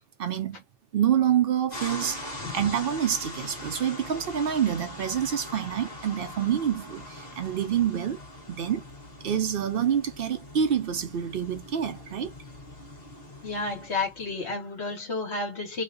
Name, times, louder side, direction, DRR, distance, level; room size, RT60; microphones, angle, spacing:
voice 1, 0.2-0.6 0.9-8.2 8.5-8.8 9.2-12.3, right 9 dB, 55° right, 0.7 m, -27 dB
sound 1, 1.7-14.5, left 1 dB, 35° left, 1.3 m, -42 dB
voice 2, 13.4-15.8, left 3 dB, 60° left, 1.4 m, -31 dB
3.0 x 2.2 x 3.7 m
omnidirectional pair, 1.3 m